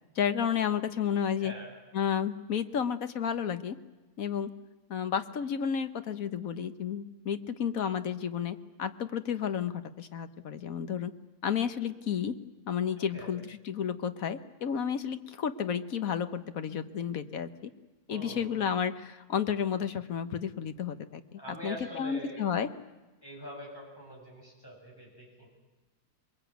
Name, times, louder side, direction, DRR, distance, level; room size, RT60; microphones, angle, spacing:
voice 1, 0.2-1.5 1.9-3.8 4.2-4.5 4.9-11.1 11.4-12.3 12.7-17.7 18.1-22.7, left 8 dB, 60° left, 11 dB, 1.4 m, -32 dB
voice 2, 1.4-1.7 13.0-13.3 18.1-18.7 21.4-22.4 23.2-25.5, equal, 15° left, -3 dB, 7.7 m, -44 dB
22.0 x 21.5 x 9.2 m, 1.2 s
omnidirectional pair, 1.7 m